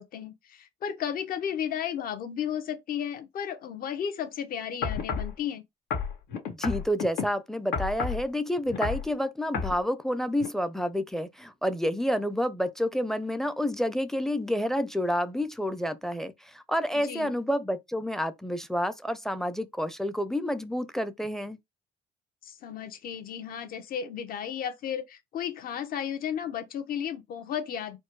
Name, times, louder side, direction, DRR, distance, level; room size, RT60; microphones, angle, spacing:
voice 1, 0.0-5.6 16.9-17.4 22.4-28.0, left 8 dB, 60° left, 1.0 m, -34 dB
sound 1, 4.8-5.3 5.9-7.3 7.7-8.2 8.7-9.1 9.5-9.8 10.4-10.5, left 6 dB, 90° left, 1.6 m, -30 dB
voice 2, 6.5-21.6, equal, ahead, 0.5 m, -29 dB
4.3 x 2.2 x 4.6 m
cardioid pair, 110°, 17 cm